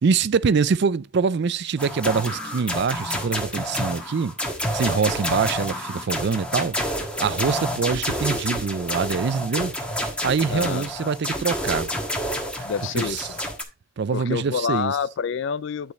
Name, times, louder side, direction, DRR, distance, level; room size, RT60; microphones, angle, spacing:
voice 1, 0.0-4.3 4.7-9.7 10.2-11.9 12.9-13.3 14.0-14.9, right 5 dB, 55° right, 0.4 m, -24 dB
sound 1, 1.8-13.6, equal, 5° left, 1.4 m, -29 dB
voice 2, 10.5-11.1 12.6-13.3 14.1-15.9, left 6 dB, 60° left, 0.4 m, -28 dB
10.5 x 5.0 x 4.1 m
head